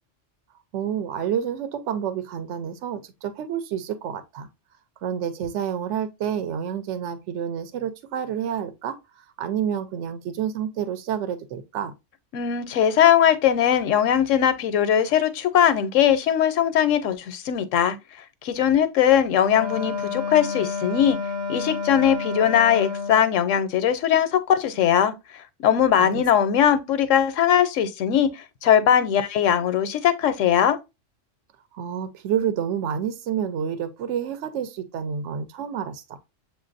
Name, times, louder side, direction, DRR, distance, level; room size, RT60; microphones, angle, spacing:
voice 1, 0.7-4.5 5.0-9.0 9.4-11.9 26.0-26.2 31.7-36.2, right 8 dB, 75° right, 0.9 m, -29 dB
voice 2, 12.3-18.0 18.4-21.2 21.5-30.8, left 9 dB, 80° left, 1.0 m, -20 dB
Wind instrument woodwind instrument, 19.5-23.3, left 4 dB, 45° right, 0.8 m, -30 dB
7.3 x 2.6 x 2.5 m
omnidirectional pair, 1.3 m